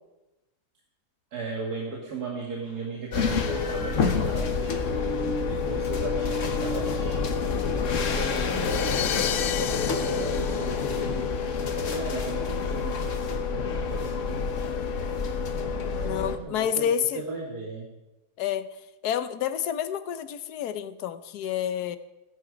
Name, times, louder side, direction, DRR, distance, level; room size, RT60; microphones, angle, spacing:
voice 1, 1.3-7.3 7.8-9.3 9.6-11.3 11.7-14.6 15.9-17.9, right 3 dB, 70° right, -2 dB, 2.5 m, -37 dB
sound 1, 3.1-16.4, left 5 dB, 50° left, 1.4 m, -28 dB
sound 2, 8.3-11.6, left 9 dB, 90° left, 1.4 m, -32 dB
voice 2, 8.3-8.8 16.0-17.2 18.4-18.7 19.0-22.0, left 9 dB, 75° left, 11 dB, 1.3 m, -29 dB
17.0 x 10.5 x 5.1 m, 1.0 s
omnidirectional pair, 1.8 m